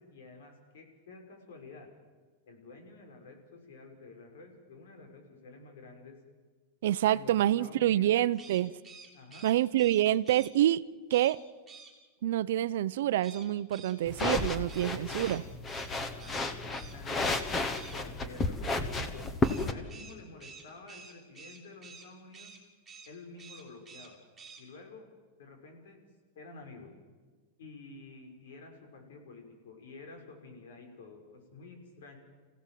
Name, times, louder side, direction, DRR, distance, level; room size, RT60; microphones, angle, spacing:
voice 1, 0.0-1.9 2.5-6.2 7.1-8.2 9.1-9.5 14.8-15.5 16.1-17.5 17.9-22.5 23.1-24.2 24.6-25.1 25.4-26.0 26.3-26.9 27.6-32.2, left 3 dB, 75° left, 5.5 m, -50 dB
voice 2, 6.8-8.7 9.4-10.8 11.1-11.4 12.2-15.4, right 13 dB, 70° right, 0.7 m, -27 dB
sound 1, 8.3-10.5 11.1-11.4 11.7-11.9 13.2-15.9 16.2-16.4 16.7-17.0 17.2-18.0 19.4-22.1 22.3-22.6 22.8-23.1 23.4-24.1 24.4-24.6, right 5 dB, 5° right, 3.0 m, -50 dB
sound 2, 14.1-19.7, left 2 dB, 15° left, 1.2 m, -32 dB
28.0 x 16.5 x 7.6 m
supercardioid pair, 175°, 0 cm